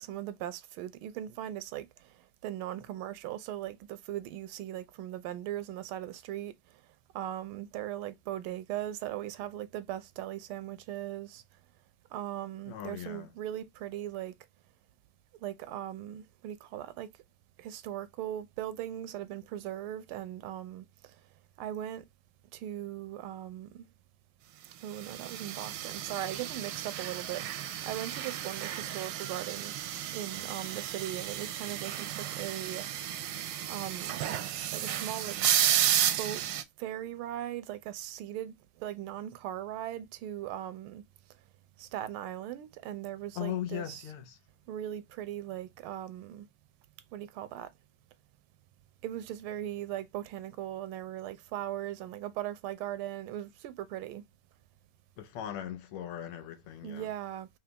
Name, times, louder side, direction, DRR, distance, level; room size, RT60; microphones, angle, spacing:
voice 1, 0.0-6.5 7.1-11.4 12.1-14.3 15.4-17.1 17.6-21.2 21.6-22.0 22.5-23.9 24.8-29.7 30.1-32.9 33.7-34.2 34.7-35.4 36.2-36.4 36.8-41.0 41.8-44.1 44.7-46.5 47.1-47.7 49.0-54.2 56.8-57.5, right 12 dB, 90° right, 1.5 m, -39 dB
voice 2, 12.7-13.3 43.4-44.4 55.2-57.1, left 11 dB, 90° left, 1.7 m, -38 dB
sound 1, 25.0-36.6, right 11 dB, 75° right, 1.1 m, -32 dB
3.8 x 3.0 x 3.3 m
omnidirectional pair, 2.3 m